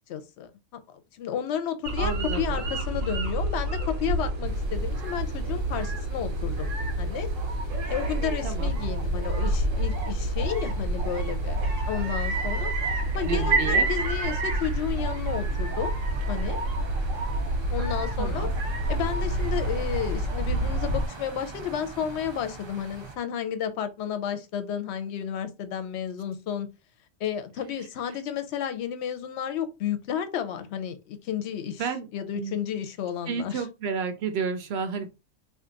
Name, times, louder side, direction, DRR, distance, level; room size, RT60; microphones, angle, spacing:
voice 1, 0.1-0.8 1.1-6.7 7.0-7.3 7.9-12.7 13.1-15.9 16.3-16.6 17.7-18.5 18.9-26.7 27.2-31.9 32.1-33.6, left 9 dB, 65° left, 0.8 m, -32 dB
sound 1, 1.8-21.1, right 1 dB, 80° right, 1.0 m, -28 dB
voice 2, 2.0-2.7 8.4-8.7 13.2-13.9 18.2-18.5 31.7-32.1 32.3-32.6 33.3-35.1, right 6 dB, 60° right, 0.8 m, -31 dB
sound 2, 4.4-23.2, right 4 dB, 45° right, 0.3 m, -44 dB
2.5 x 2.4 x 3.8 m
omnidirectional pair, 1.3 m